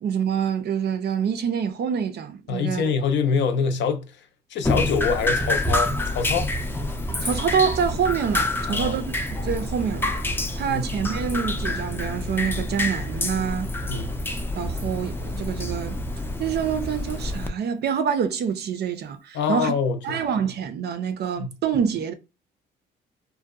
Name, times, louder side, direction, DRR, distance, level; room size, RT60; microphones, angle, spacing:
voice 1, 0.0-2.8 7.2-10.2 10.6-13.7 14.5-16.0 16.4-19.7 20.0-22.1, right 7 dB, 55° right, 0.5 m, -26 dB
voice 2, 2.5-4.2 4.5-6.5 8.7-9.0 10.7-10.8 13.9-14.1 19.3-20.2 21.4-21.5, left 6 dB, 70° left, 0.5 m, -25 dB
Drip, 4.6-17.5, left 1 dB, 10° left, 0.4 m, -27 dB
2.7 x 2.1 x 2.3 m
cardioid pair, 90°, 20 cm